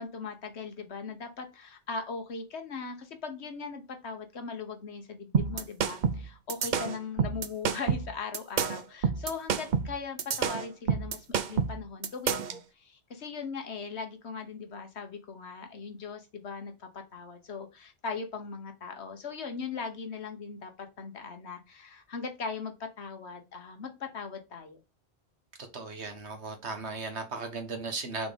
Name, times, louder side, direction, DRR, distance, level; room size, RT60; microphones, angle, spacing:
voice 1, 0.0-24.8, left 5 dB, 70° left, 1.4 m, -39 dB
sound 1, 5.3-12.6, right 6 dB, 50° right, 0.6 m, -28 dB
voice 2, 25.7-28.3, right 3 dB, 75° right, 1.6 m, -36 dB
6.0 x 3.6 x 5.1 m
omnidirectional pair, 1.2 m